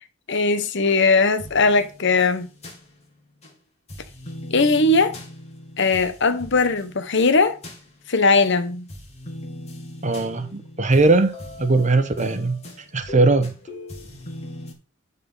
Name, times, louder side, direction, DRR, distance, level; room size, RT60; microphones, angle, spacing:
voice 1, 0.3-2.5 4.5-5.2 5.8-7.6 8.1-8.9, left 3 dB, 60° left, 1.1 m, -19 dB
sound 1, 1.2-3.5 3.9-8.5 8.9-14.7, left 1 dB, 35° left, 2.5 m, -40 dB
voice 2, 10.0-12.6 12.9-13.5, right 3 dB, 40° right, 1.1 m, -19 dB
10.5 x 4.3 x 5.6 m
head